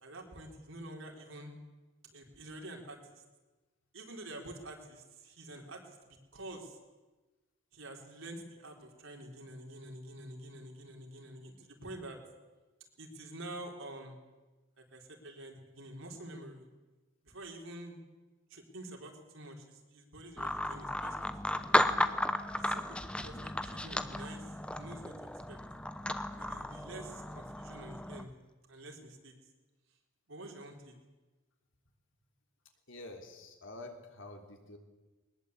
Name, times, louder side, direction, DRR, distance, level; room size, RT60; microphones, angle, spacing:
voice 1, 0.0-1.5 2.1-3.0 3.9-6.8 7.7-12.2 13.0-14.2 14.8-16.7 17.2-18.0 18.5-22.0 22.6-25.1 25.5-25.6 26.4-28.3 28.7-29.3 30.3-30.9, right 1 dB, 65° right, 1 dB, 4.2 m, -48 dB
sound 1, 20.4-28.3, left 1 dB, 5° left, 0.8 m, -34 dB
voice 2, 32.9-34.8, left 2 dB, 60° left, 3 dB, 3.5 m, -48 dB
22.0 x 20.0 x 8.3 m, 1.2 s
head